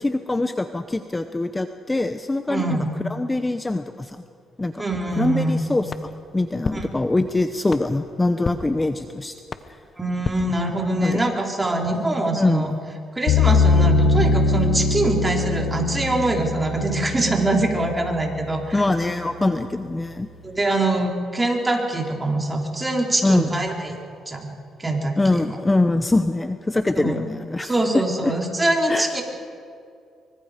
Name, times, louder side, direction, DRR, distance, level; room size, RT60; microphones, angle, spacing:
voice 1, 0.0-2.8 3.1-4.2 4.6-4.8 5.2-9.4 11.0-11.2 12.3-12.7 18.7-20.3 23.2-23.5 25.2-28.3 28.9-29.1, left 2 dB, 15° left, 9 dB, 0.9 m, -23 dB
voice 2, 2.5-2.9 4.8-5.7 6.7-6.8 10.0-12.7 13.2-18.8 20.4-24.0 24.3-24.5 24.8-25.4 27.0-27.2 27.6-29.2, right 2 dB, 20° right, 1 dB, 3.9 m, -23 dB
sound 1, 5.9-11.2, left 5 dB, 40° left, 1.1 m, -35 dB
sound 2, 13.3-18.4, left 3 dB, 80° left, 1.6 m, -21 dB
24.5 x 24.0 x 5.1 m, 2.4 s
cardioid pair, 90°, 0 cm